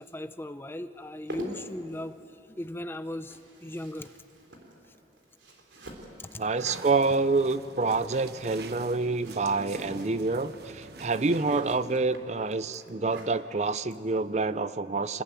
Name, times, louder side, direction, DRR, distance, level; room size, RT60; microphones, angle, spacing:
voice 1, 0.0-2.2 2.5-4.1 6.3-6.4, left 1 dB, 10° left, 11 dB, 0.6 m, -37 dB
sound 1, 1.0-14.5, right 1 dB, 90° right, 3.8 m, -47 dB
voice 2, 6.4-15.2, right 3 dB, 40° right, 14 dB, 0.5 m, -27 dB
sound 2, 6.6-11.6, right 3 dB, 60° right, 1.1 m, -45 dB
27.0 x 20.5 x 9.1 m, 2.8 s
head